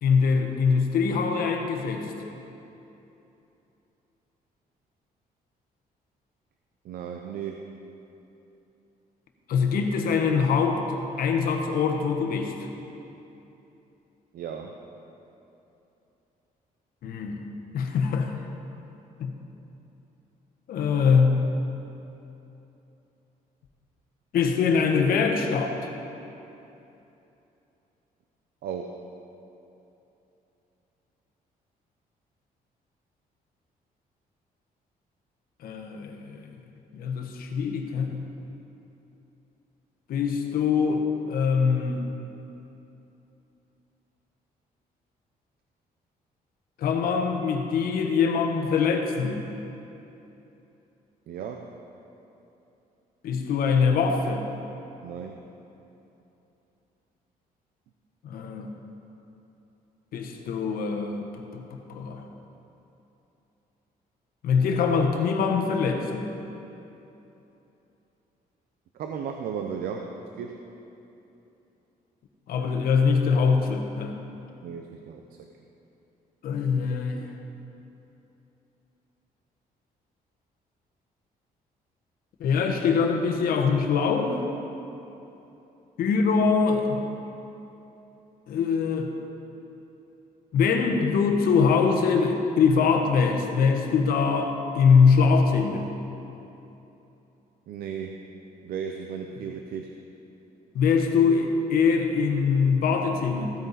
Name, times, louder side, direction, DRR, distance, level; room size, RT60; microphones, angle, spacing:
voice 1, 0.0-2.1 9.5-12.7 17.0-17.4 17.7-18.3 19.2-19.3 20.7-21.5 24.3-25.8 35.6-36.5 36.9-38.2 40.1-42.0 46.8-49.4 53.2-54.4 58.2-58.7 60.1-61.3 61.5-61.6 61.9-62.2 64.4-66.3 72.5-74.1 76.4-77.3 82.4-84.4 86.0-87.0 88.5-89.1 90.5-95.9 100.7-103.5, left 5 dB, 70° left, 4 dB, 1.2 m, -23 dB
voice 2, 6.8-7.7 14.3-14.8 28.6-29.0 51.3-51.8 55.0-55.4 68.9-70.7 74.6-75.2 97.7-98.2 98.6-99.9, right 7 dB, 75° right, 3 dB, 0.7 m, -35 dB
15.5 x 9.1 x 4.1 m, 3.0 s
cardioid pair, 160°, 16 cm